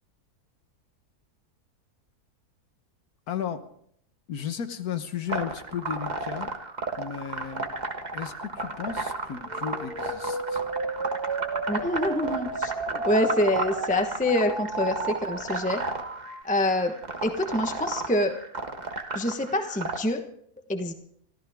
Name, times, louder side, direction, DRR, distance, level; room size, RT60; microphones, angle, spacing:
voice 1, 3.3-3.7 4.3-6.5 7.0-7.7 8.1-10.6, left 8 dB, 75° left, 10 dB, 1.6 m, -34 dB
sound 1, 5.3-20.0, right 3 dB, 30° right, 1.5 m, -33 dB
sound 2, 9.4-16.4, right 3 dB, 80° right, 2.4 m, -34 dB
voice 2, 11.7-15.8 16.4-17.0 17.2-18.4 19.1-20.2 20.7-20.9, left 1 dB, 5° left, 6 dB, 1.0 m, -26 dB
25.0 x 14.5 x 3.6 m, 0.66 s
omnidirectional pair, 1.7 m